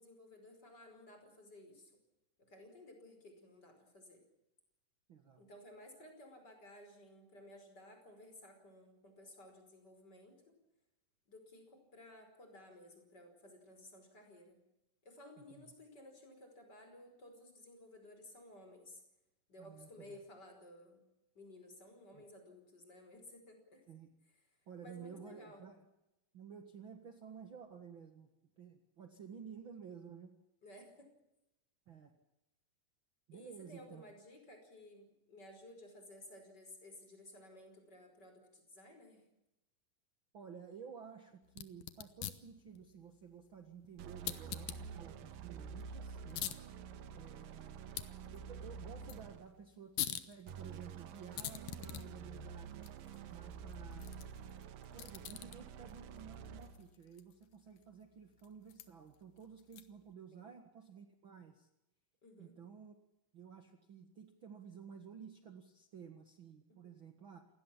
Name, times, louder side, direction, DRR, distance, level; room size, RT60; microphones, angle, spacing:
voice 1, 0.0-1.9 2.4-4.2 5.4-10.5 11.3-14.6 15.0-19.0 19.5-21.0 21.3-23.8 24.8-25.6 30.6-31.1 33.3-39.3 60.3-60.5 62.2-62.6 66.7-67.0, left 1 dB, 30° left, 5 dB, 5.7 m, -56 dB
voice 2, 5.1-5.4 15.4-15.7 19.6-20.2 22.1-22.2 23.9-24.1 24.7-25.8 26.3-28.3 28.6-30.3 31.9-32.1 33.3-34.0 40.3-46.5 47.1-48.0 48.3-52.9 53.3-54.3 54.9-61.7 62.4-63.0 63.3-67.5, right 7 dB, 45° right, 6 dB, 2.0 m, -53 dB
sound 1, 41.5-60.1, left 12 dB, 75° left, 2.8 m, -48 dB
sound 2, 44.0-49.6 50.5-56.9, right 6 dB, 90° right, 3.0 m, -49 dB
28.0 x 18.5 x 7.3 m, 0.89 s
omnidirectional pair, 3.9 m